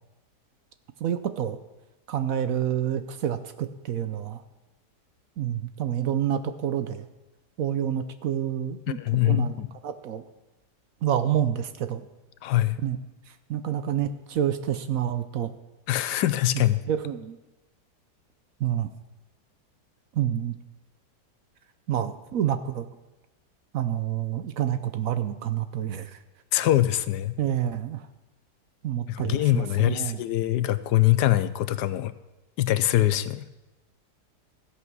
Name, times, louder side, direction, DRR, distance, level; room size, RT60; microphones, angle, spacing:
voice 1, 1.0-1.6 2.1-4.4 5.4-7.1 7.6-9.0 9.2-9.5 9.8-10.2 11.0-12.0 12.8-13.0 13.5-15.5 16.9-17.4 18.6-18.9 20.1-20.5 21.9-22.9 23.7-26.2 27.4-28.0 28.8-30.2, right 10 dB, 65° right, 11 dB, 1.0 m, -28 dB
voice 2, 8.9-9.7 12.4-12.8 15.9-16.8 26.5-27.4 29.1-32.1 32.6-33.4, left 14 dB, 85° left, 14 dB, 1.2 m, -23 dB
14.0 x 8.2 x 6.2 m, 1.1 s
omnidirectional pair, 1.8 m